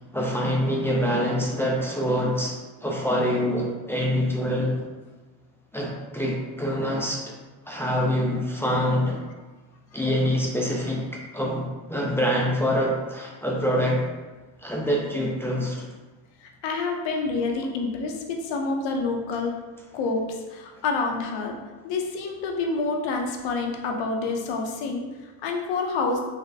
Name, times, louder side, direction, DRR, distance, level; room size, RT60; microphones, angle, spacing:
voice 1, 0.1-2.5 2.8-4.8 5.7-7.3 7.7-9.2 9.9-14.1 14.6-15.9, equal, 5° left, -3 dB, 0.3 m, -25 dB
voice 2, 16.4-19.6 19.9-21.6 21.8-26.2, left 3 dB, 70° left, 2 dB, 0.7 m, -28 dB
4.0 x 2.1 x 2.6 m, 1.2 s
cardioid pair, 100°, 46 cm